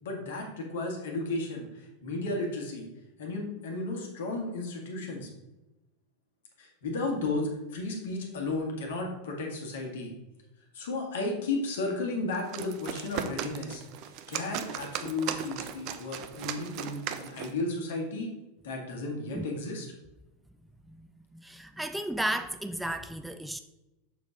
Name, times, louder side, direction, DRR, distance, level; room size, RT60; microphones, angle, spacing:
voice 1, 0.0-2.9 3.2-5.3 6.6-10.1 10.7-13.8 14.3-18.3 18.6-19.9, left 2 dB, 65° left, 2.0 m, -34 dB
sound 1, 12.3-17.6, right 9 dB, 45° right, 0.6 m, -37 dB
voice 2, 20.8-23.6, right 1 dB, 5° right, 0.4 m, -34 dB
6.8 x 6.7 x 3.9 m
figure-of-eight pair, 85°, 0 cm